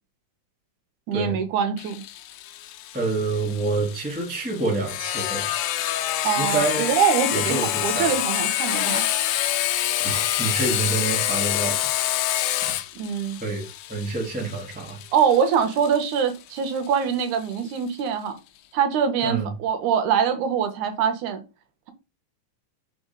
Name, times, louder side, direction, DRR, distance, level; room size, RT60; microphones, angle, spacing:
voice 1, 1.1-2.0 6.2-9.1 13.0-13.4 15.1-18.4 18.7-21.4, right 7 dB, 80° right, 2.4 m, -23 dB
Sawing, 1.8-17.2, left 13 dB, 85° left, 2.1 m, -27 dB
voice 2, 2.9-5.5 6.4-6.9 7.3-8.2 10.0-11.9 12.2-12.3 12.6-12.7 13.4-15.0 19.2-19.5, right 3 dB, 5° right, 0.6 m, -27 dB
4.9 x 4.3 x 5.1 m
omnidirectional pair, 3.5 m